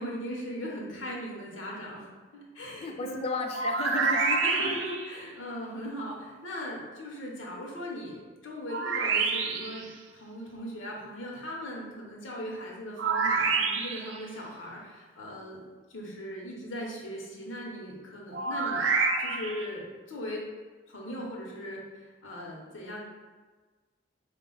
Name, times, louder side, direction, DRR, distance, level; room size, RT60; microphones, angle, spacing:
voice 1, 0.0-3.2 4.4-9.9 10.1-15.6 15.9-18.8 19.2-20.4 20.9-23.0, equal, 90° left, -2 dB, 0.9 m, -39 dB
voice 2, 2.8-4.8, left 3 dB, 30° left, 4 dB, 0.3 m, -34 dB
sound 1, 3.5-5.2 8.7-9.9 13.0-14.2 18.3-19.7, right 4 dB, 75° right, 0.4 m, -28 dB
4.1 x 2.3 x 3.8 m, 1.4 s
head